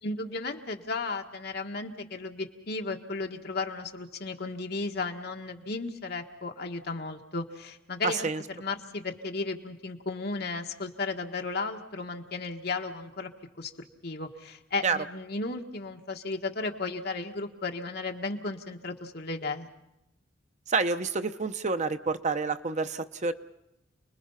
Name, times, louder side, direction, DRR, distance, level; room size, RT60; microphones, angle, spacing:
voice 1, 0.0-8.3 8.5-13.3 13.6-19.7, left 3 dB, 55° left, 3 dB, 1.7 m, -34 dB
voice 2, 8.0-8.4 14.8-15.0 20.7-23.3, right 4 dB, 40° right, 9 dB, 0.8 m, -28 dB
29.5 x 21.0 x 5.7 m, 0.89 s
head